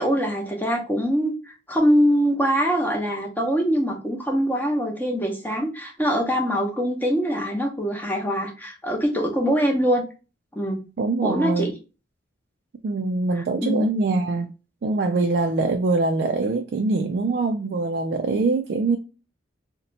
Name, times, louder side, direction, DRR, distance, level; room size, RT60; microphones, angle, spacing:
voice 1, 0.0-10.0 10.5-10.8 11.2-11.7 13.3-13.9, equal, 10° left, 0.7 m, -23 dB
voice 2, 11.0-11.7 12.8-14.5 14.8-19.0, right 3 dB, 55° right, 0.3 m, -23 dB
2.8 x 2.1 x 3.9 m
head